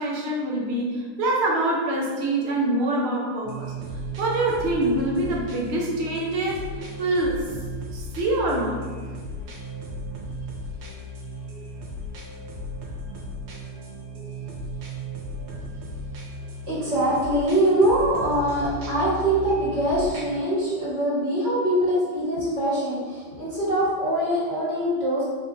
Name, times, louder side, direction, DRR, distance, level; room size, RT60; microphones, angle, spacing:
voice 1, 0.0-3.7 4.2-6.6 7.0-7.4 7.9-8.8, right 1 dB, 55° right, -2 dB, 0.7 m, -25 dB
sound 1, 3.4-20.4, equal, 75° right, 1.5 m, -36 dB
voice 2, 16.6-25.2, right 1 dB, 35° right, -10 dB, 1.6 m, -23 dB
4.5 x 3.9 x 2.6 m, 1.5 s
omnidirectional pair, 2.0 m